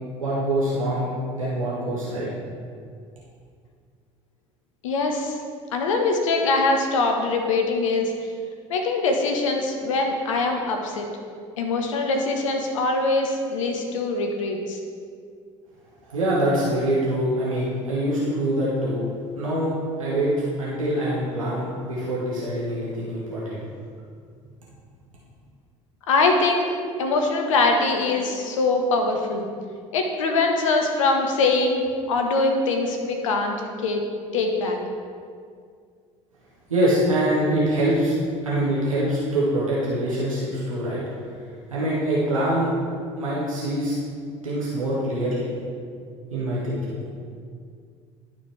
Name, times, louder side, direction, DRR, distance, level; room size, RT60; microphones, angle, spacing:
voice 1, 0.2-2.3 16.0-19.0 19.4-19.7 20.0-20.3 20.6-23.6 36.7-38.1 38.4-41.0 41.7-42.7 43.2-44.0 44.4-45.5 46.3-47.0, right 1 dB, 85° right, -8 dB, 1.3 m, -24 dB
voice 2, 4.8-5.4 5.7-8.1 8.7-11.1 11.6-14.8 26.1-26.6 27.0-29.5 29.9-33.5 33.8-34.0 34.3-34.8, left 3 dB, 70° left, 3 dB, 0.9 m, -23 dB
11.5 x 4.2 x 3.3 m, 2.2 s
figure-of-eight pair, 60°, 17 cm